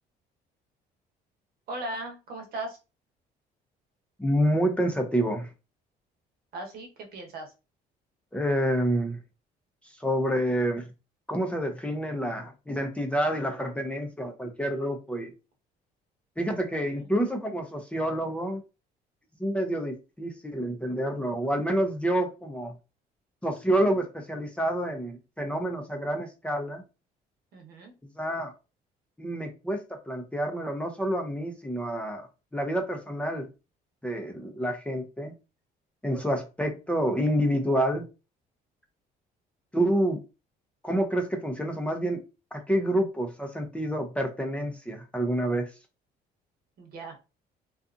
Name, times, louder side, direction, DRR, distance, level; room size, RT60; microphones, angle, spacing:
voice 1, 1.7-2.8 6.5-7.5 16.9-17.1 27.5-27.9 46.8-47.2, right 2 dB, 65° right, 1.0 m, -38 dB
voice 2, 4.2-5.5 8.3-9.2 10.0-10.9 11.3-15.3 16.4-18.6 19.4-22.7 23.4-26.8 28.2-28.5 29.2-32.3 32.5-33.5 34.0-35.3 36.0-38.1 39.7-40.2 40.8-42.2 42.5-45.7, right 1 dB, 5° left, 0.5 m, -28 dB
2.6 x 2.4 x 2.4 m
cardioid pair, 110°, 17 cm